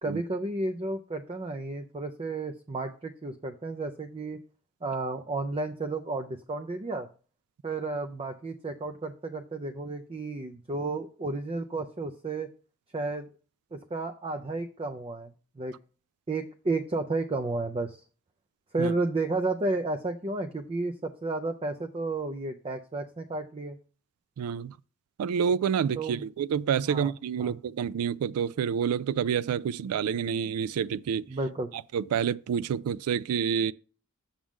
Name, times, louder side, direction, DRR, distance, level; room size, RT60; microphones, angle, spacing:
voice 1, 0.0-4.4 4.8-7.1 7.6-12.5 12.9-13.3 13.7-15.7 16.3-18.0 18.7-23.8 26.0-26.2 26.9-27.1 27.4-27.6 31.3-31.7, right 2 dB, 25° right, 0.4 m, -32 dB
voice 2, 24.4-24.7 25.2-31.3 31.9-33.7, right 7 dB, 90° right, 0.3 m, -28 dB
7.3 x 6.2 x 3.6 m
head